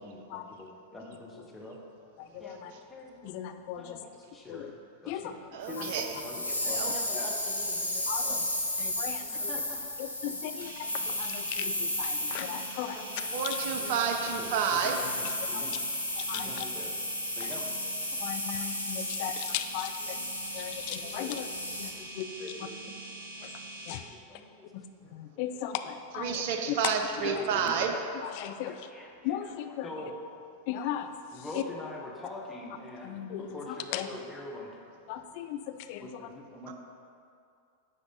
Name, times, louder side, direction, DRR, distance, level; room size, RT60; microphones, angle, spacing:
voice 1, 0.0-0.7 0.9-1.3 1.5-1.8 2.4-4.8 5.0-8.5 9.3-9.8 10.2-10.6 12.2-13.5 13.8-13.9 14.4-15.8 16.3-16.9 17.4-17.7 18.1-18.2 18.5-18.6 20.0-20.3 21.0-21.4 21.8-23.0 23.4-23.5 23.9-24.7 25.4-25.6 26.2-26.6 27.2-28.0 28.6-30.1 31.3-34.8 36.0-36.7, left 1 dB, 10° left, -2 dB, 0.9 m, -44 dB
voice 2, 2.2-2.7 3.2-4.0 4.5-4.7 5.1-5.3 8.1-8.2 8.8-9.5 10.0-13.0 15.5-15.6 16.2-16.7 17.4-17.5 18.2-20.2 20.5-21.5 21.8-22.3 23.9-24.1 24.7-24.8 25.1-26.9 27.2-27.5 28.2-28.9 29.2-29.9 30.7-31.6 33.0-34.1 35.1-36.2, left 11 dB, 45° left, 8 dB, 0.3 m, -37 dB
voice 3, 5.5-6.1 6.5-7.0 13.3-15.0 26.2-27.9 36.7-36.8, right 7 dB, 50° right, 5 dB, 0.5 m, -30 dB
sound 1, 5.6-21.9, left 1 dB, 90° left, 0.7 m, -34 dB
sound 2, 10.6-24.0, right 2 dB, 65° right, 1.3 m, -44 dB
9.8 x 3.6 x 3.7 m, 2.4 s
figure-of-eight pair, 90°, 0 cm